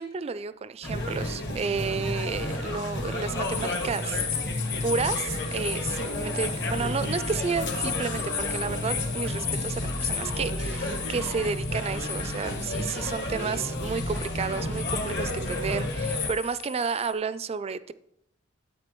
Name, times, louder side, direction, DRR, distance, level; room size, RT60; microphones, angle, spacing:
voice 1, 0.0-4.2 4.8-17.9, right 5 dB, 30° right, 0.3 m, -31 dB
sound 1, 0.8-16.3, left 1 dB, 55° left, 1.4 m, -31 dB
sound 2, 3.4-17.1, left 8 dB, 85° left, 2.6 m, -36 dB
12.5 x 8.4 x 3.0 m
head